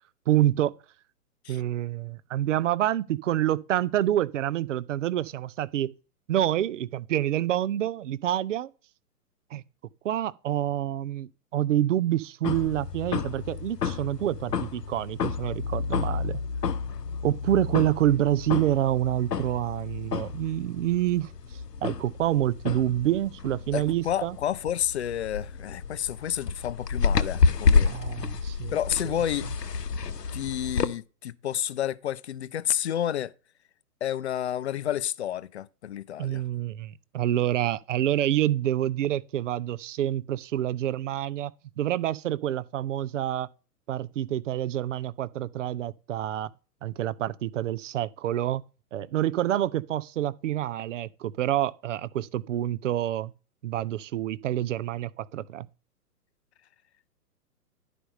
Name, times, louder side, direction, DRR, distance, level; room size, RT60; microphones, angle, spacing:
voice 1, 0.3-0.7 1.5-5.9 6.3-8.7 9.5-9.6 10.0-16.4 17.2-21.3 21.8-24.4 27.8-28.8 29.0-29.1 36.2-41.5 41.8-43.5 43.9-46.5 46.8-48.6 48.9-53.3 53.6-55.7, right 12 dB, 50° right, 0.5 m, -27 dB
sound 1, 12.4-30.9, left 5 dB, 80° left, 0.8 m, -30 dB
voice 2, 23.7-28.0 28.7-29.5 30.3-33.3 34.0-36.4, left 10 dB, 45° left, 0.5 m, -30 dB
11.0 x 5.0 x 5.2 m
figure-of-eight pair, 120°, 48 cm